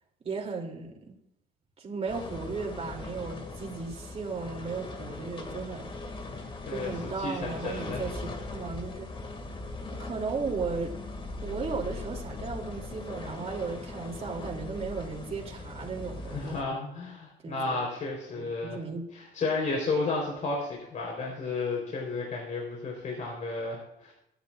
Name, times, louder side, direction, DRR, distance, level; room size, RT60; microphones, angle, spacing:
voice 1, 0.2-1.2 1.8-5.9 6.7-9.1 10.0-10.9 11.4-16.6 17.4-17.8 18.3-19.0, right 4 dB, 35° right, 1 dB, 3.1 m, -35 dB
sound 1, 2.1-16.6, left 2 dB, 30° left, 2.3 m, -40 dB
voice 2, 6.7-8.0 16.3-18.8 19.1-24.1, left 3 dB, 50° left, -1 dB, 4.0 m, -32 dB
25.0 x 10.5 x 2.5 m, 0.82 s
cardioid pair, 110°, 17 cm